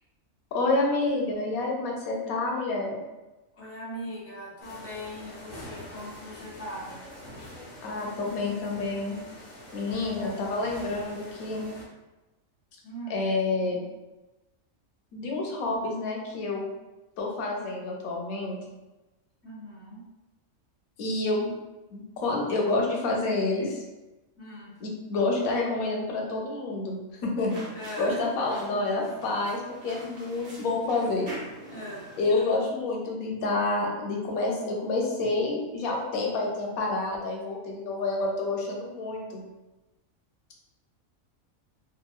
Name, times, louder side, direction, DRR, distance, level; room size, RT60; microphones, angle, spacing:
voice 1, 0.5-3.0 7.8-9.2 9.7-11.7 13.1-13.8 15.1-16.7 17.2-18.6 21.0-21.5 21.9-23.8 24.8-27.5 28.0-29.6 29.8-31.3 32.2-39.4, left 2 dB, 90° left, -1 dB, 1.1 m, -28 dB
voice 2, 3.6-6.9 12.8-13.2 19.4-20.0 24.4-24.7 27.7-28.2 31.7-32.1, equal, 10° left, -8 dB, 1.0 m, -39 dB
sound 1, 4.6-11.8, left 1 dB, 45° left, 0.8 m, -45 dB
sound 2, 27.4-32.4, right 1 dB, 60° right, 1.0 m, -45 dB
2.8 x 2.5 x 2.3 m, 1.1 s
omnidirectional pair, 1.4 m